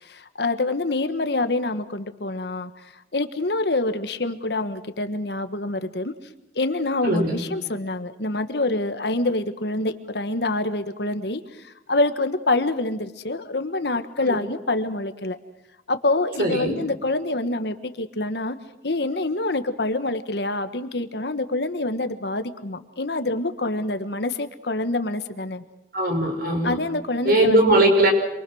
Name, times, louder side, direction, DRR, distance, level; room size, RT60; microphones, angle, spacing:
voice 1, 0.0-2.7 3.1-6.1 6.5-15.4 15.9-18.6 18.8-25.6 26.6-27.8, left 2 dB, 70° left, 10 dB, 1.5 m, -26 dB
voice 2, 7.0-7.4 14.2-14.4 16.4-16.7 25.9-26.8 27.3-28.1, right 1 dB, 55° right, 3 dB, 5.6 m, -19 dB
27.5 x 23.0 x 6.4 m, 0.87 s
head